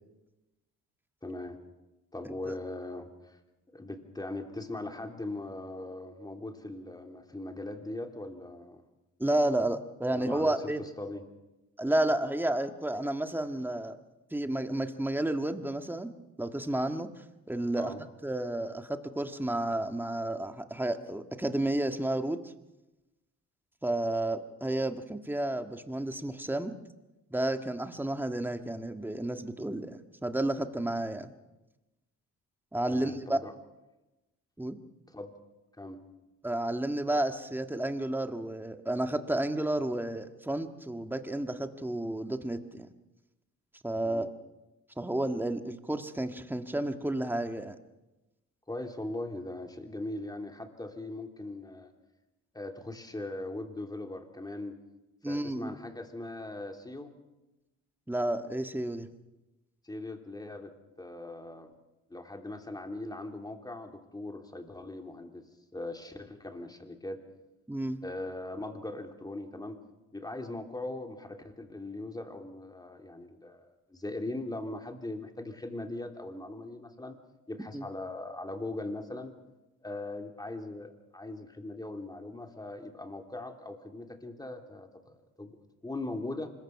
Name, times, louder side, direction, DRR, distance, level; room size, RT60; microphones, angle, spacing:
voice 1, 1.2-1.6 2.1-3.4 3.7-8.8 10.1-11.2 17.8-18.0 32.9-33.5 35.1-35.3 35.8-36.0 44.0-44.3 48.7-51.9 52.5-54.8 55.2-57.1 59.8-61.7 62.1-65.4 65.7-67.2 68.0-69.8 70.1-77.2 77.5-79.3 79.8-86.5, left 2 dB, 15° left, 4 dB, 3.1 m, -40 dB
voice 2, 2.2-2.6 9.2-10.8 11.8-14.0 14.3-16.1 16.4-17.9 18.2-22.4 23.8-26.7 27.3-31.3 32.7-33.4 34.6-34.8 36.4-42.9 43.8-44.3 45.0-47.7 55.2-55.7 58.1-59.1 67.7-68.0 77.7-77.9, right 1 dB, 5° right, 7 dB, 1.7 m, -31 dB
25.0 x 21.5 x 5.9 m, 1.0 s
cardioid pair, 90°, 30 cm